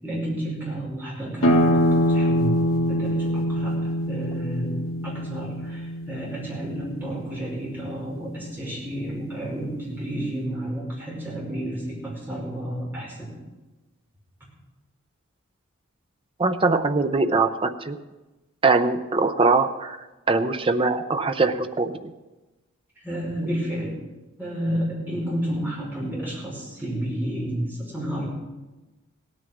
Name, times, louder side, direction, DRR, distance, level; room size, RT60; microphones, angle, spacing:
voice 1, 0.0-13.3 23.0-24.0 24.4-28.3, right 1 dB, 10° right, -5 dB, 5.5 m, -31 dB
sound 1, 1.4-6.8, equal, 70° left, 2.0 m, -23 dB
voice 2, 16.4-18.0 18.6-22.1, right 3 dB, 25° right, 9 dB, 0.6 m, -22 dB
16.5 x 9.4 x 6.4 m, 1.1 s
head